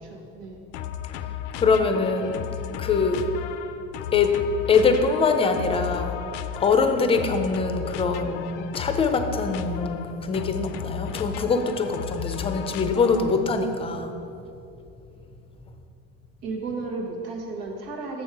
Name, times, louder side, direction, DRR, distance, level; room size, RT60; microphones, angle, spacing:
voice 1, 0.0-0.6 16.4-18.2, right 3 dB, 85° right, 1 dB, 1.5 m, -33 dB
sound 1, 0.7-13.5, left 10 dB, 70° left, 0.5 m, -34 dB
voice 2, 1.6-2.4 2.8-3.3 4.1-4.4 4.7-6.2 6.6-14.2, left 4 dB, 20° left, 6 dB, 0.5 m, -23 dB
7.4 x 6.3 x 4.7 m, 2.6 s
cardioid pair, 135°, 30 cm